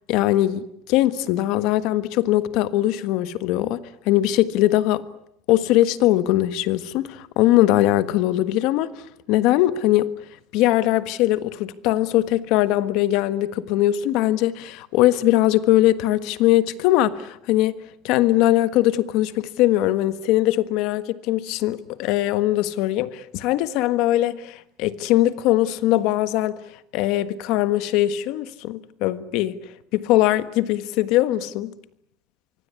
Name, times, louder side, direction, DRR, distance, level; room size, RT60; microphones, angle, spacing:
voice 1, 0.1-3.8 4.0-5.0 5.5-8.9 9.3-10.1 10.5-17.8 18.0-26.6 26.9-31.7, left 15 dB, 65° left, 1.5 m, -21 dB
24.5 x 24.5 x 9.7 m
cardioid pair, 165°, 0 cm